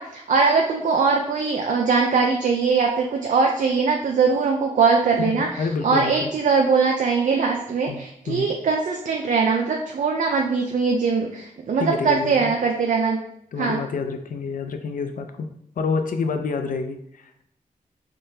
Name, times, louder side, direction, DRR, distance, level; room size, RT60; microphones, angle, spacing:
voice 1, 0.0-13.2 13.6-13.8, right 4 dB, 65° right, 1 dB, 0.4 m, -21 dB
voice 2, 5.2-6.3 7.9-8.5 11.8-12.5 13.5-15.5 15.8-17.0, left 4 dB, 70° left, 6 dB, 0.5 m, -28 dB
3.7 x 3.2 x 2.7 m, 0.75 s
wide cardioid pair, 90°, 14 cm